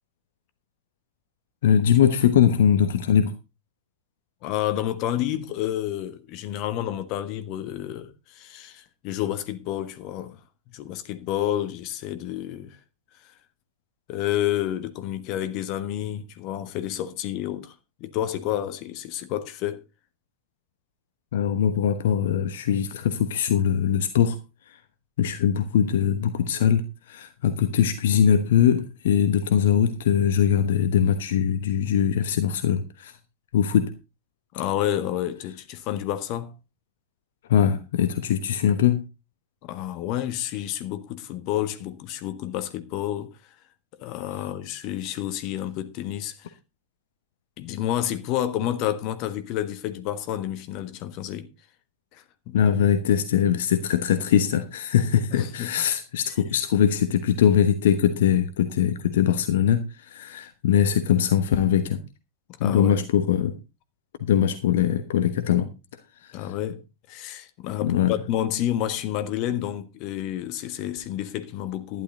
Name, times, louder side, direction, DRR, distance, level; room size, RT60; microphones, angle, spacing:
voice 1, 1.6-3.3 21.3-24.4 24.7-24.8 25.2-33.2 33.5-33.9 37.5-39.0 52.5-62.0 62.6-63.6 64.2-65.7 66.2-66.5 67.8-68.1, left 9 dB, 60° left, 1.1 m, -22 dB
voice 2, 4.4-10.4 10.7-12.8 13.2-13.3 14.1-19.8 34.5-36.5 39.6-43.5 44.0-46.5 47.6-51.5 52.1-52.6 55.3-55.7 62.6-63.0 66.3-72.0, left 12 dB, 40° left, 1.4 m, -30 dB
12.0 x 11.0 x 3.9 m
figure-of-eight pair, 90°, 0 cm